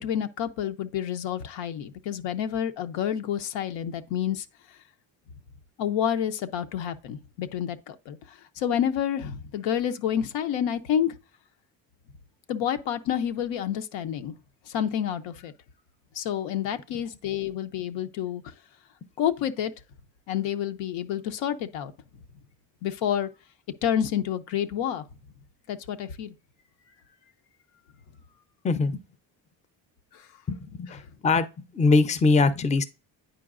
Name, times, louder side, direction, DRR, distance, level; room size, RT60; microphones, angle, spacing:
voice 1, 0.0-4.5 5.8-8.2 8.6-11.1 12.5-14.3 14.7-15.5 16.2-18.4 19.2-19.7 20.3-21.9 22.8-23.3 23.8-25.0 25.7-26.4, left 9 dB, 85° left, 0.7 m, -29 dB
voice 2, 28.6-29.0 30.5-31.5 31.7-32.8, left 3 dB, 15° left, 0.4 m, -22 dB
9.0 x 4.6 x 2.4 m
cardioid pair, 90°, 44 cm